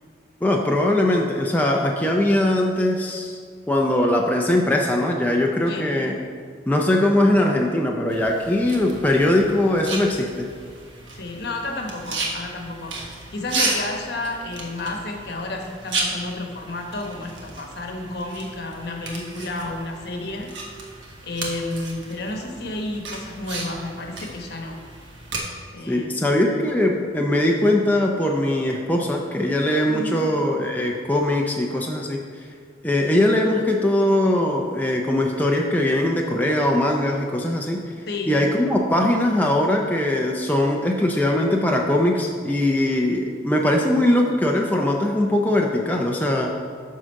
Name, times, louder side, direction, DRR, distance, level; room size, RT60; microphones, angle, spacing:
voice 1, 0.4-3.4 3.7-6.2 6.7-10.5 25.9-32.2 32.8-37.9 38.3-46.5, left 1 dB, 10° left, 0 dB, 0.5 m, -21 dB
voice 2, 5.6-6.0 11.1-20.5 21.2-24.8 25.7-26.4 29.9-30.2 38.1-38.4, left 2 dB, 60° left, 3 dB, 1.0 m, -31 dB
sound 1, 8.1-25.4, right 3 dB, 75° right, 1.4 m, -34 dB
9.7 x 3.8 x 6.3 m, 2.1 s
head